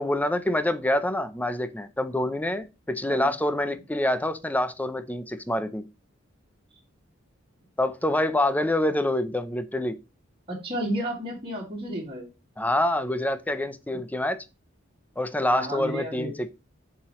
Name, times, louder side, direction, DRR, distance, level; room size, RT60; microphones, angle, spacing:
voice 1, 0.0-5.8 7.8-10.0 12.6-14.4 15.2-16.5, left 1 dB, 10° left, 0.6 m, -26 dB
voice 2, 10.5-12.3 15.5-16.4, equal, 25° right, 2.6 m, -32 dB
7.2 x 4.8 x 3.0 m
head